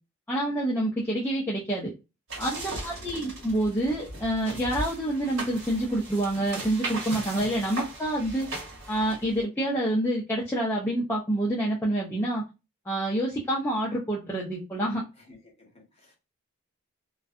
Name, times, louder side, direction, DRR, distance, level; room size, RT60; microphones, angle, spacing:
voice 1, 0.3-1.9 2.4-8.5 8.9-12.4 12.9-15.0, right 1 dB, 10° left, 0.4 m, -27 dB
sound 1, 2.3-9.4, right 2 dB, 65° right, 1.3 m, -38 dB
voice 2, 2.8-3.4 15.2-16.1, left 2 dB, 25° left, 0.8 m, -54 dB
2.6 x 2.2 x 2.3 m
head